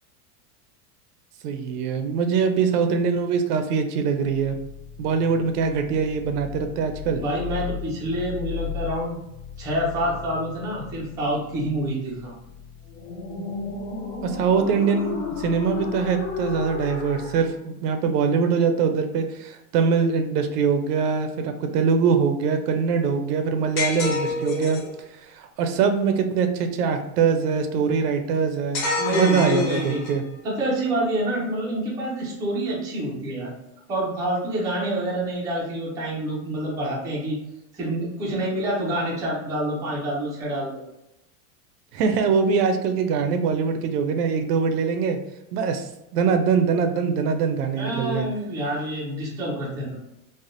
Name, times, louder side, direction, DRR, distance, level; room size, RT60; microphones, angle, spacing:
voice 1, 1.4-4.6 5.0-7.2 14.2-24.8 25.2-28.8 29.1-30.2 41.9-45.2 45.5-48.3, right 6 dB, 85° right, 7 dB, 0.6 m, -23 dB
sound 1, 4.4-17.5, left 6 dB, 70° left, 1.0 m, -35 dB
voice 2, 7.1-9.2 9.6-12.3 29.0-30.0 30.4-33.5 33.9-37.4 37.7-40.8 47.8-50.0, right 1 dB, 10° right, -5 dB, 0.3 m, -27 dB
sound 2, 23.8-24.9 28.7-30.3, left 3 dB, 45° left, 0.9 m, -28 dB
3.4 x 2.1 x 2.5 m, 0.90 s
supercardioid pair, 140°, 45 cm